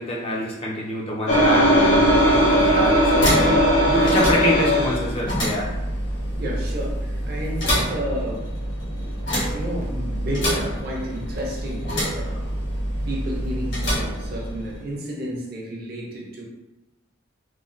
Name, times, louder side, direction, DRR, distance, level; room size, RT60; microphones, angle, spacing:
voice 1, 0.0-3.6 3.8-5.7, equal, 30° left, -3 dB, 0.5 m, -25 dB
sound 1, 1.3-5.0, equal, 85° left, 1.4 m, -18 dB
sound 2, 1.7-14.9, equal, 65° left, 1.3 m, -27 dB
voice 2, 6.4-8.5 8.9-9.1 9.5-12.5 13.1-16.4, equal, 50° right, -2 dB, 0.6 m, -31 dB
3.1 x 2.2 x 2.5 m, 0.99 s
head